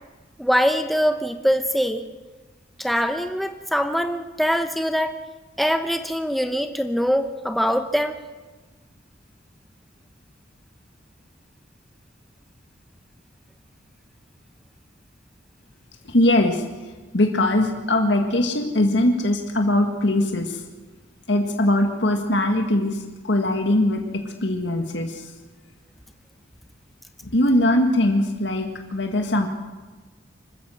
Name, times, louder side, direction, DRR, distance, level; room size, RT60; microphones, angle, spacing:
voice 1, 0.4-2.0 2.8-5.2 5.6-8.2, equal, ahead, 7 dB, 0.9 m, -23 dB
voice 2, 16.0-16.6 17.1-20.6 21.3-25.2 27.2-29.5, left 1 dB, 80° left, 4 dB, 1.9 m, -21 dB
25.5 x 13.5 x 7.9 m, 1.3 s
head